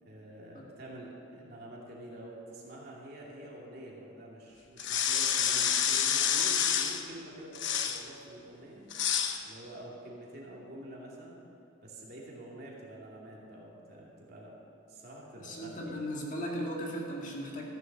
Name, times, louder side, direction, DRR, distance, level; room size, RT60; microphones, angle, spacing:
voice 1, 0.0-8.8 9.4-11.4 11.8-14.5 14.9-16.1, right 1 dB, 50° right, -4 dB, 2.6 m, -47 dB
sound 1, 4.8-7.0 7.6-8.0 8.9-9.4, left 8 dB, 65° left, 0.8 m, -28 dB
voice 2, 15.4-17.6, equal, 40° left, -2 dB, 2.0 m, -37 dB
15.0 x 7.8 x 7.6 m, 2.8 s
head